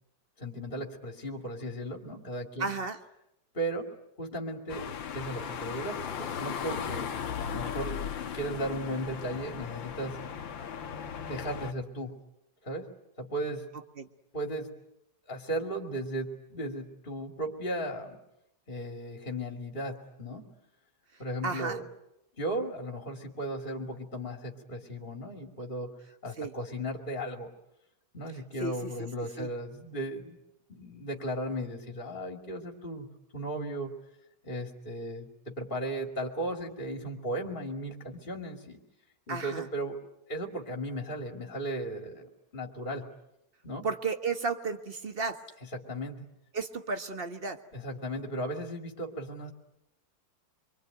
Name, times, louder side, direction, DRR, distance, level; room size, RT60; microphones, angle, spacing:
voice 1, 0.4-2.7 3.5-3.9 4.2-4.8 5.1-7.1 7.5-8.0 8.3-10.2 11.2-12.1 12.6-12.9 13.2-13.6 14.3-14.7 15.3-18.2 18.7-20.5 21.2-21.8 22.4-25.9 26.2-27.5 28.1-30.4 30.7-33.1 33.3-33.9 34.4-38.8 39.3-40.0 40.3-43.1 43.6-43.9 45.6-46.2 47.7-49.5, right 1 dB, 25° left, 3 dB, 2.7 m, -36 dB
voice 2, 2.6-3.0 14.0-14.1 21.4-21.8 26.4-26.5 28.6-29.1 29.4-29.5 39.3-39.7 43.8-45.4 46.5-47.6, right 4 dB, 30° right, 8 dB, 1.5 m, -33 dB
sound 1, 4.7-11.7, left 7 dB, 75° left, 2.0 m, -37 dB
26.5 x 24.0 x 9.2 m, 0.83 s
omnidirectional pair, 2.1 m